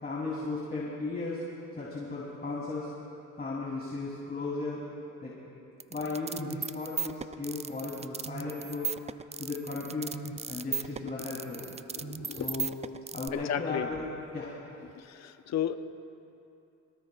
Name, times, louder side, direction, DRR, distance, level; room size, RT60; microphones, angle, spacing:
voice 1, 0.0-1.4 1.8-2.9 3.4-4.8 5.2-5.3 5.9-8.9 9.4-10.2 10.5-11.6 12.2-12.7 13.1-14.1 14.3-14.5, left 3 dB, 30° left, -6 dB, 3.4 m, -35 dB
sound 1, 5.8-13.3, right 6 dB, 20° right, 0.4 m, -36 dB
voice 2, 11.9-12.5 13.3-13.9 14.9-15.7, left 10 dB, 60° left, 9 dB, 0.7 m, -34 dB
25.5 x 18.5 x 2.5 m, 2.7 s
cardioid pair, 90°, 30 cm